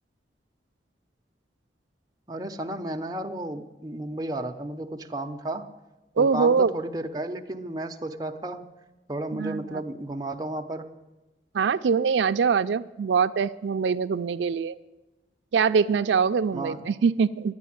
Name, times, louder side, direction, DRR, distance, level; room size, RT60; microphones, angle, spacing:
voice 1, 2.3-5.7 6.2-8.6 9.1-10.9 16.5-16.8, right 1 dB, 20° right, 3 dB, 0.7 m, -33 dB
voice 2, 6.2-6.8 9.3-9.8 11.5-14.8 15.5-17.5, right 5 dB, 85° right, 11 dB, 0.4 m, -23 dB
11.0 x 9.4 x 9.9 m, 1.1 s
head